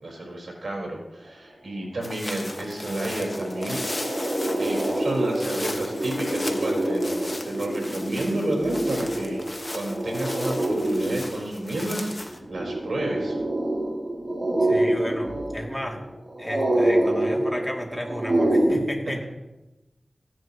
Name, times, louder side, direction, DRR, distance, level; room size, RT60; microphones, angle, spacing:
voice 1, 0.0-3.8 4.1-9.4 9.7-13.4, right 1 dB, 80° right, -2 dB, 3.9 m, -31 dB
sound 1, 2.0-12.4, left 2 dB, 35° left, 1.1 m, -37 dB
sound 2, 2.5-18.7, right 1 dB, 45° right, 4.4 m, -26 dB
voice 2, 14.6-16.0 16.4-19.3, equal, 10° left, 0 dB, 2.3 m, -33 dB
15.5 x 10.0 x 2.9 m, 1.0 s
wide cardioid pair, 65°, 0 cm